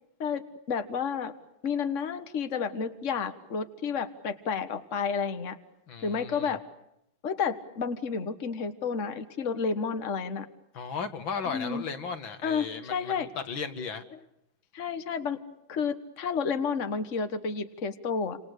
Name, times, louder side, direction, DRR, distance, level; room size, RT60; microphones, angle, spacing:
voice 1, 0.7-1.3 1.6-5.6 6.0-6.6 7.2-10.5 11.5-11.8 12.4-13.3 14.7-15.4 15.7-18.4, left 6 dB, 40° left, 9 dB, 1.8 m, -31 dB
voice 2, 5.9-6.5 10.7-14.0, left 5 dB, 75° left, 8 dB, 2.6 m, -36 dB
28.5 x 27.5 x 6.7 m, 0.81 s
omnidirectional pair, 2.2 m